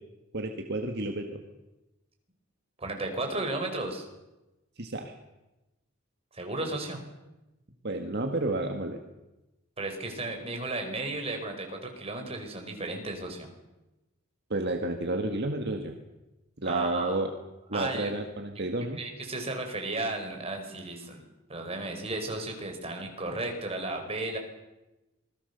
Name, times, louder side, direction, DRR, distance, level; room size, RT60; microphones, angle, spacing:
voice 1, 0.3-1.4 4.8-5.2 7.8-9.0 14.5-16.0 16.6-17.3 17.7-19.0, right 2 dB, 50° right, 4 dB, 1.8 m, -31 dB
voice 2, 2.8-4.1 6.3-7.0 9.8-13.5 16.6-17.2 17.7-18.1 19.0-21.2 21.5-24.4, right 2 dB, 30° right, 3 dB, 4.9 m, -34 dB
27.0 x 21.0 x 6.9 m, 1.0 s
head